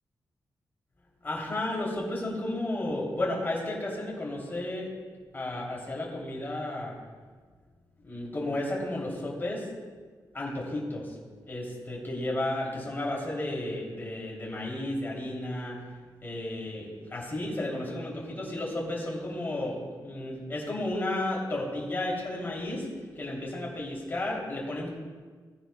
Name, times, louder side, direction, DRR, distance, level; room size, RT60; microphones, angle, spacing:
voice 1, 1.2-4.9 5.3-7.0 8.0-9.7 10.3-11.2 11.5-15.8 16.2-22.9 23.2-24.9, left 1 dB, 30° left, -3 dB, 3.1 m, -33 dB
19.0 x 10.0 x 2.3 m, 1.5 s
wide cardioid pair, 165°, 8 cm